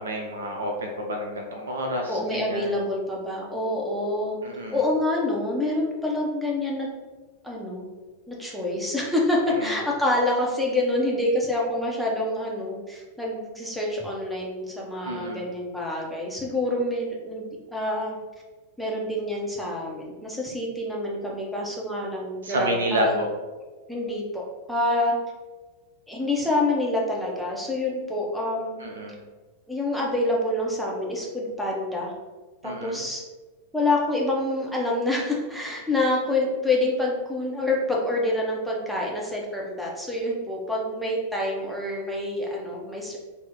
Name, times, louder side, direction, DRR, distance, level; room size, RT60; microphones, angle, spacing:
voice 1, 0.0-2.7 4.4-4.8 9.5-9.8 15.0-15.5 22.4-23.3 28.8-29.2 32.6-33.0, equal, 65° right, 2 dB, 0.5 m, -29 dB
voice 2, 2.1-4.4 4.7-6.9 7.4-7.8 8.3-18.2 18.8-23.2 23.9-25.2 26.1-28.8 29.7-32.1 32.6-33.2 33.7-43.2, left 1 dB, ahead, -3 dB, 0.6 m, -27 dB
2.7 x 2.0 x 3.6 m, 1.3 s
figure-of-eight pair, 90°, 0 cm